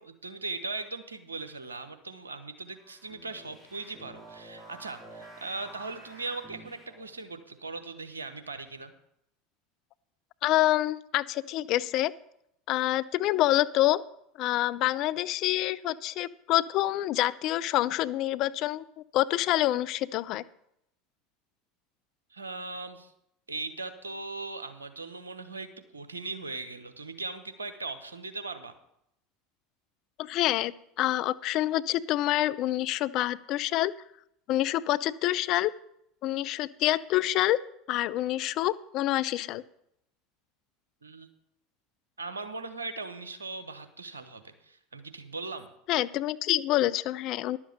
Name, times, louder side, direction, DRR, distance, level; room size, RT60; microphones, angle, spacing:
voice 1, 0.2-8.9 22.3-23.1 23.5-28.7 41.0-41.3 42.2-45.7, right 3 dB, 90° right, 9 dB, 1.0 m, -39 dB
sound 1, 2.8-7.2, right 1 dB, 5° right, 5.0 m, -50 dB
voice 2, 10.4-12.1 12.7-14.0 14.4-18.8 19.1-20.4 30.2-33.9 34.5-35.7 36.2-37.6 37.9-39.6 45.9-47.6, left 15 dB, 50° left, 16 dB, 0.4 m, -27 dB
11.0 x 7.4 x 6.7 m, 0.77 s
hypercardioid pair, 75°, 0 cm